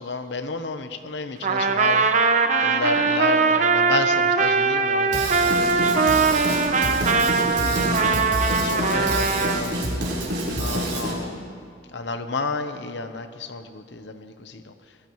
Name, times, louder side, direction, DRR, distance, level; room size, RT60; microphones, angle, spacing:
voice 1, 0.0-2.0 2.6-6.6 7.1-9.9 10.6-14.7, left 3 dB, 70° left, 9 dB, 0.9 m, -32 dB
Trumpet, 1.4-9.6, right 4 dB, 40° right, 0.8 m, -21 dB
Drum kit / Drum, 5.1-11.1, right 1 dB, 65° right, 4.2 m, -27 dB
25.0 x 17.5 x 3.1 m, 2.3 s
head